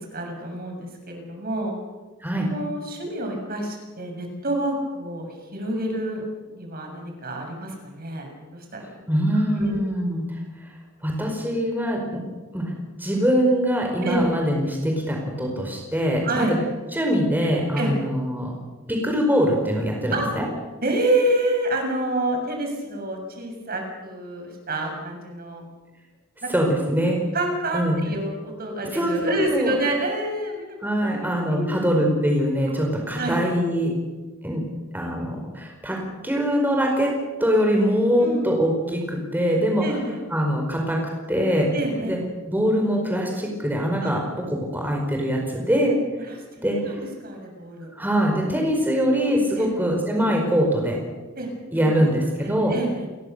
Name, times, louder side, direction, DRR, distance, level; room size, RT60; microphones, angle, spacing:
voice 1, 0.1-1.8 2.3-6.3 6.5-9.1 9.3-9.9 14.0-14.3 16.2-16.6 17.8-17.9 20.1-20.4 20.8-25.6 26.4-26.5 27.3-30.6 31.0-31.9 33.1-33.4 38.2-38.5 39.8-40.2 41.7-42.2 44.0-44.1 46.2-46.4 46.8-47.9 49.6-49.7 51.4-53.1, right 1 dB, 45° right, 3 dB, 7.1 m, -28 dB
voice 2, 9.1-10.2 11.0-12.0 12.5-12.7 13.0-16.5 16.9-18.5 18.9-20.4 26.5-27.2 27.7-28.0 28.9-29.7 30.8-33.9 34.4-34.6 34.9-36.0 36.2-37.1 37.4-39.8 40.3-41.0 41.3-41.7 42.0-42.2 42.5-44.2 44.5-45.9 46.6-47.0 48.0-51.0 51.7-52.7, equal, 10° right, 1 dB, 4.9 m, -23 dB
29.5 x 22.5 x 6.8 m, 1.3 s
head